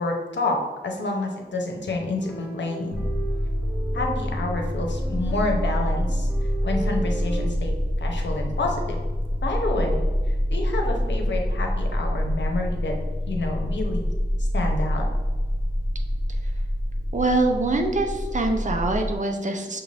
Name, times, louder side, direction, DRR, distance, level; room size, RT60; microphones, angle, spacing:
voice 1, 0.0-3.0 3.9-6.3 6.6-8.8 9.4-10.0 10.3-12.9 13.3-14.1 14.5-15.0, left 2 dB, 80° left, 2 dB, 0.8 m, -28 dB
sound 1, 2.2-7.5, right 2 dB, 5° right, 1.0 m, -38 dB
sound 2, 2.9-19.2, equal, 25° left, 0.5 m, -26 dB
voice 2, 17.1-19.8, right 2 dB, 45° right, 4 dB, 0.6 m, -24 dB
5.9 x 2.5 x 3.3 m, 1.3 s
wide cardioid pair, 80°, 18 cm